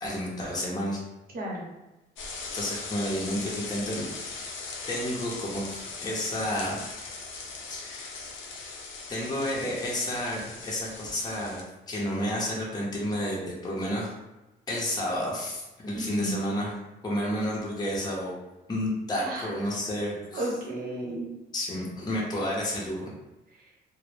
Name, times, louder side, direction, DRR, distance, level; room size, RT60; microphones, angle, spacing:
voice 1, 0.0-1.0 2.5-4.1 4.9-6.8 7.7-8.2 9.1-14.1 14.7-16.8 17.0-18.4 18.7-20.5 21.5-23.1, left 1 dB, 20° left, -4 dB, 0.6 m, -31 dB
voice 2, 1.3-1.7 15.9-16.3 19.2-19.5 20.3-21.3 23.6-23.7, right 1 dB, 50° right, -3 dB, 0.9 m, -33 dB
sound 1, 2.2-11.6, left 4 dB, 85° left, 0.5 m, -39 dB
2.0 x 2.0 x 3.1 m, 1.0 s
cardioid pair, 90°, 20 cm